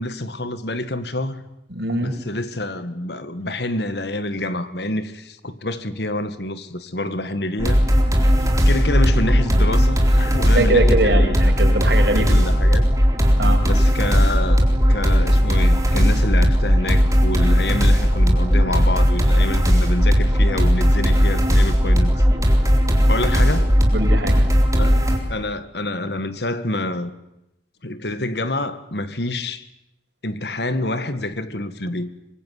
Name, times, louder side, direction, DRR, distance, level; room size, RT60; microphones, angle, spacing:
voice 1, 0.0-1.4 2.0-7.8 8.7-11.5 12.1-12.9 13.7-22.1 23.1-23.7 24.8-25.0 25.3-27.1 27.8-29.6 30.2-32.1, left 2 dB, 70° left, 1.9 m, -27 dB
voice 2, 1.7-2.1 10.5-12.3 13.4-13.6 23.9-24.4, right 1 dB, 70° right, 6.3 m, -22 dB
sound 1, 7.6-25.2, equal, 20° right, 4.0 m, -17 dB
25.0 x 22.0 x 9.6 m
head